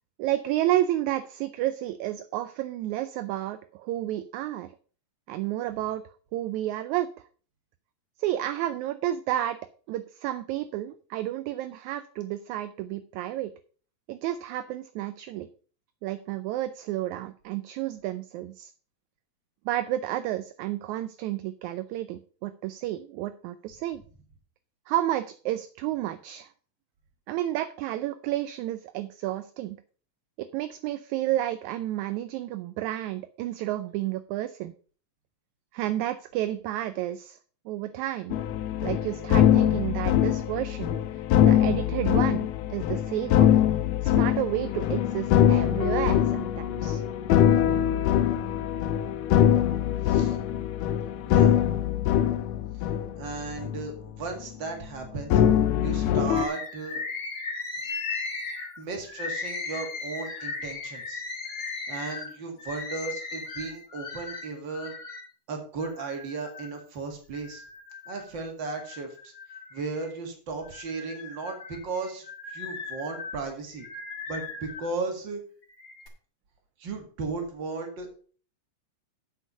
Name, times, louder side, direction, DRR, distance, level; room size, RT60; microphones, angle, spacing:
voice 1, 0.2-4.7 5.3-6.0 6.3-7.1 8.2-9.6 9.9-13.5 14.1-15.5 16.0-18.7 19.6-24.0 24.9-26.5 27.3-29.8 30.5-34.7 35.7-37.4 37.6-38.4 38.8-40.9 41.4-43.5 44.0-47.0, right 14 dB, 80° right, 12 dB, 1.8 m, -31 dB
sound 1, 38.3-53.8 54.1-54.5 55.3-56.5, left 10 dB, 80° left, 1.7 m, -23 dB
voice 2, 50.0-50.4 51.2-51.6 53.2-55.4 55.8-57.0 58.8-61.2 61.9-64.9 65.5-67.6 68.1-69.3 69.7-73.9 74.3-75.4 76.8-78.1, right 4 dB, 40° right, 3 dB, 2.3 m, -35 dB
Bird, 56.4-65.3 65.8-66.8 67.3-68.3 68.8-70.2 70.6-74.9 75.6-76.1, left 4 dB, 40° left, 1.3 m, -37 dB
8.3 x 6.4 x 5.5 m, 0.43 s
omnidirectional pair, 3.7 m